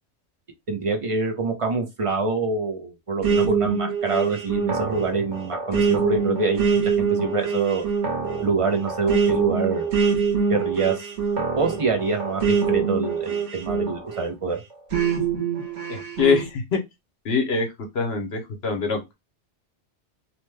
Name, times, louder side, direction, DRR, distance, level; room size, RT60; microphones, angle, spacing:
voice 1, 0.7-7.9 8.4-9.9 10.5-11.1 11.6-14.6, right 4 dB, 35° right, 0.6 m, -25 dB
sound 1, 3.2-14.3 14.9-16.4, right 5 dB, 80° right, 1.3 m, -24 dB
voice 2, 15.9-16.8 17.2-19.1, left 5 dB, 65° left, 1.0 m, -24 dB
2.9 x 2.2 x 3.2 m
omnidirectional pair, 1.2 m